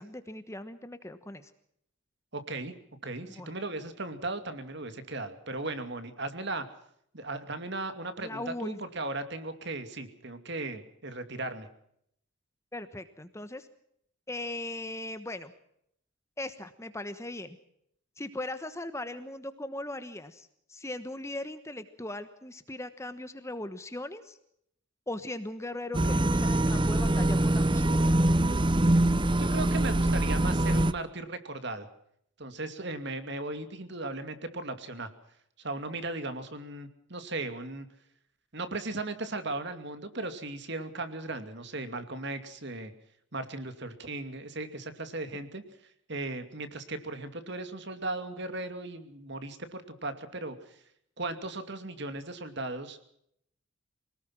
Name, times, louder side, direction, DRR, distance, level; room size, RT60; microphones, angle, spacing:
voice 1, 0.0-1.5 3.4-3.5 8.2-8.8 12.7-13.7 14.3-15.5 16.4-17.6 18.2-24.4 25.1-28.2, left 1 dB, 15° left, 11 dB, 1.2 m, -39 dB
voice 2, 2.3-2.7 3.0-6.7 7.1-11.7 29.4-31.9 32.4-35.1 35.6-37.9 38.5-42.9 43.3-45.6 46.1-50.8 51.2-53.0, right 2 dB, 55° right, 9 dB, 2.5 m, -37 dB
sound 1, 25.9-30.9, right 1 dB, 20° right, 0.7 m, -24 dB
26.0 x 19.0 x 6.0 m, 0.72 s
head